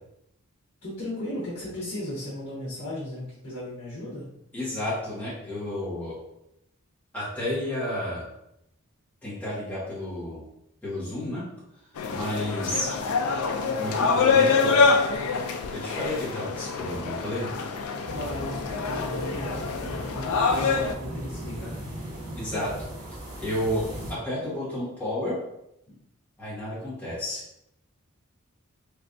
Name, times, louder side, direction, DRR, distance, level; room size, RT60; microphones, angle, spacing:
voice 1, 0.8-4.2 18.1-21.7 25.9-26.0, left 1 dB, 50° left, -10 dB, 1.3 m, -36 dB
voice 2, 4.5-6.2 7.1-8.2 9.2-10.4 10.8-11.4 12.1-12.9 13.8-14.8 15.7-17.5 22.3-22.9 23.4-25.4 26.4-27.4, left 1 dB, 5° left, -12 dB, 1.4 m, -31 dB
sound 1, 12.0-20.9, left 4 dB, 75° left, 0.4 m, -25 dB
sound 2, 18.0-24.1, right 1 dB, 75° right, 1.4 m, -38 dB
3.3 x 3.1 x 2.6 m, 0.80 s
head